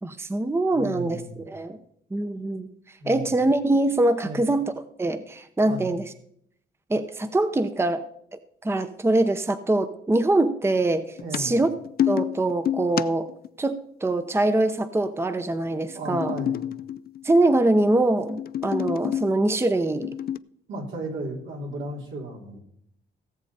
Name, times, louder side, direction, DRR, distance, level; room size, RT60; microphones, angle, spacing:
voice 1, 0.0-1.8 2.1-2.7 3.1-4.7 5.0-6.1 6.9-8.0 8.3-11.7 12.1-13.3 13.6-16.3 17.2-20.1, right 2 dB, 10° right, 10 dB, 0.7 m, -23 dB
voice 2, 0.7-1.4 3.0-3.3 4.2-4.4 5.7-5.9 11.2-11.6 15.9-16.6 20.7-22.6, right 1 dB, 80° right, 0 dB, 3.2 m, -35 dB
sound 1, 11.2-13.5 15.7-17.5 18.0-19.4 19.9-20.4, left 10 dB, 50° left, 0.4 m, -28 dB
17.5 x 7.3 x 4.1 m, 0.68 s
cardioid pair, 90°, 20 cm